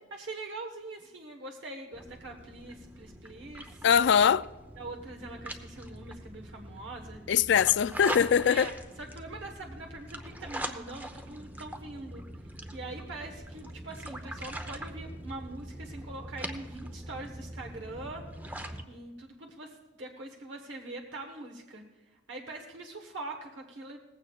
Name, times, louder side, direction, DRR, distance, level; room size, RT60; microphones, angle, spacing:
voice 1, 0.1-3.9 4.8-7.2 8.4-12.2 12.7-18.3 18.9-24.0, right 2 dB, 65° right, 1.3 m, -43 dB
sound 1, 1.9-18.8, right 1 dB, 10° right, 0.7 m, -42 dB
voice 2, 3.8-4.4 7.3-8.7, left 8 dB, 65° left, 0.3 m, -22 dB
18.5 x 15.5 x 2.4 m
head